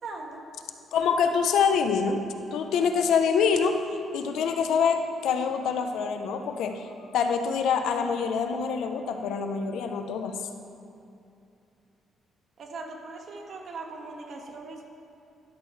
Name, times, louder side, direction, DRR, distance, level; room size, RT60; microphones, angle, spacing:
voice 1, 0.0-0.4 12.6-14.9, right 3 dB, 60° right, 2 dB, 1.5 m, -39 dB
voice 2, 0.9-3.8 4.1-10.4, left 6 dB, 80° left, 6 dB, 0.8 m, -25 dB
13.0 x 11.5 x 3.3 m, 2.7 s
cardioid pair, 90°, 0 cm